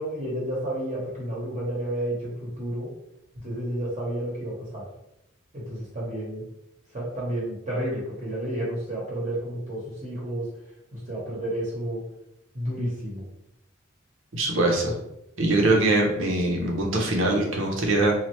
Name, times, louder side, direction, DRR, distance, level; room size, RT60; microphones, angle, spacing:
voice 1, 0.0-2.9 3.4-4.9 5.5-6.4 6.9-10.5 10.9-12.0 12.5-13.2, right 1 dB, 35° right, -6 dB, 0.9 m, -31 dB
voice 2, 14.3-14.9 15.4-18.1, right 2 dB, 75° right, 0 dB, 0.7 m, -22 dB
3.1 x 2.3 x 3.0 m, 0.84 s
head